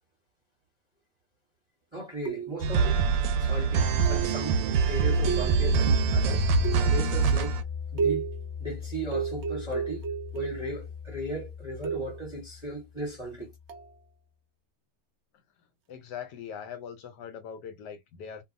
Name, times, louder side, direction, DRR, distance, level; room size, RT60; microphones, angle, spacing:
voice 1, 1.9-3.0 3.4-4.6 4.9-6.5 6.9-7.6 7.9-8.3 8.6-10.0 10.3-13.5, right 1 dB, 20° right, 0.8 m, -36 dB
sound 1, 2.2-2.8 4.0-4.4 5.3-5.9 6.6-7.1 8.0-8.5 9.1-10.8 11.8-12.3 13.7-13.9, right 7 dB, 70° right, 0.6 m, -32 dB
sound 2, 2.6-7.6, right 5 dB, 90° right, 1.3 m, -24 dB
sound 3, 4.2-13.8, left 7 dB, 45° left, 0.5 m, -37 dB
voice 2, 15.9-18.4, left 8 dB, 75° left, 1.2 m, -41 dB
2.6 x 2.6 x 2.5 m
omnidirectional pair, 1.9 m